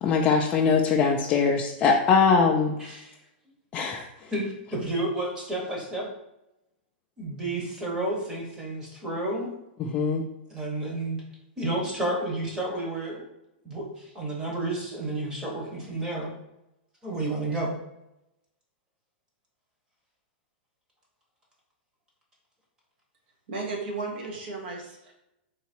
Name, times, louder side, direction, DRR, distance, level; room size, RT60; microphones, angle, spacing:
voice 1, 0.0-2.8 3.7-4.1 9.8-10.2, left 5 dB, 20° left, -1 dB, 0.4 m, -22 dB
voice 2, 2.8-3.1 4.3-6.1 7.2-9.5 10.5-11.2 11.6-13.2 13.6-16.3 17.0-17.8, right 2 dB, 10° right, -2 dB, 1.1 m, -31 dB
voice 3, 23.5-25.1, right 3 dB, 65° right, 0 dB, 1.4 m, -34 dB
3.9 x 3.0 x 4.3 m, 0.87 s
supercardioid pair, 155°, 6 cm